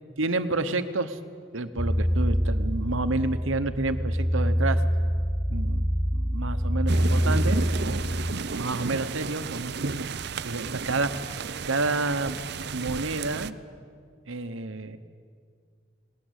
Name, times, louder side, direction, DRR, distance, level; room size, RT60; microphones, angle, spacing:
voice 1, 0.2-1.2 1.5-4.8 5.5-10.0 10.4-12.3 12.7-13.6 14.3-15.0, right 2 dB, 70° right, 11 dB, 1.0 m, -30 dB
sound 1, 1.8-8.3, equal, 15° right, 4.8 m, -25 dB
sound 2, 6.9-13.5, right 4 dB, 50° right, 0.5 m, -33 dB
19.5 x 19.0 x 8.3 m, 2.1 s
head